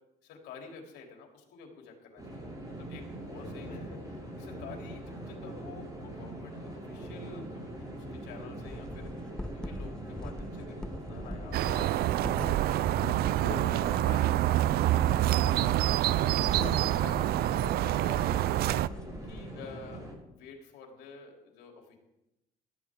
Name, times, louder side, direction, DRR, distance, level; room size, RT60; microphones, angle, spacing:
voice 1, 0.2-12.8 13.5-16.6 17.0-22.0, left 5 dB, 85° left, 1 dB, 3.3 m, -49 dB
sound 1, 2.2-20.1, right 1 dB, 25° right, 6.9 m, -42 dB
voice 2, 3.4-3.9 12.8-13.9 16.6-16.9 18.0-18.1, left 4 dB, 65° left, 0 dB, 5.4 m, -43 dB
sound 2, 8.7-19.5, left 1 dB, 5° left, 0.4 m, -43 dB
sound 3, 11.5-18.9, right 14 dB, 65° right, 0.4 m, -27 dB
17.0 x 13.5 x 3.7 m, 0.91 s
cardioid pair, 110°, 17 cm